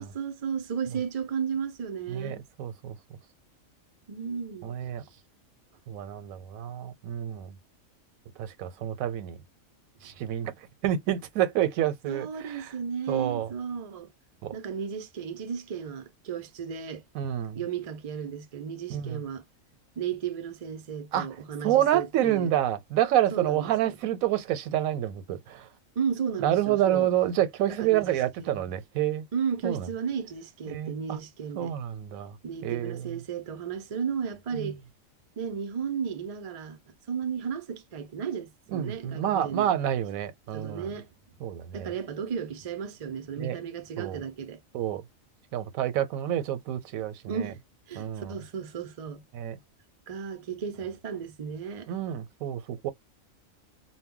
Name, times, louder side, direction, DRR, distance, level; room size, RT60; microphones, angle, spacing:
voice 1, 0.0-2.4 4.1-4.8 12.1-14.1 14.5-17.0 17.5-19.4 20.0-22.5 23.3-23.7 26.0-27.1 27.7-28.7 29.3-31.7 32.4-34.8 35.4-36.8 37.1-39.7 40.5-41.1 41.7-44.6 47.3-47.6 47.9-49.2 50.1-51.9, right 7 dB, 65° right, 0.3 m, -34 dB
voice 2, 2.1-3.0 4.6-5.0 5.9-7.6 8.4-9.4 10.0-10.5 10.8-12.7 13.1-13.5 14.4-14.5 17.1-17.6 18.9-19.2 21.1-21.3 21.6-25.7 26.4-29.3 29.6-29.9 30.7-31.2 31.6-32.4 32.6-33.2 34.5-34.7 38.7-40.9 41.4-41.9 43.4-43.6 44.0-44.2 44.7-45.0 45.5-47.5 48.0-48.4 49.3-49.6 51.9-52.9, right 11 dB, 85° right, 1.0 m, -28 dB
2.2 x 2.1 x 3.6 m
omnidirectional pair, 1.4 m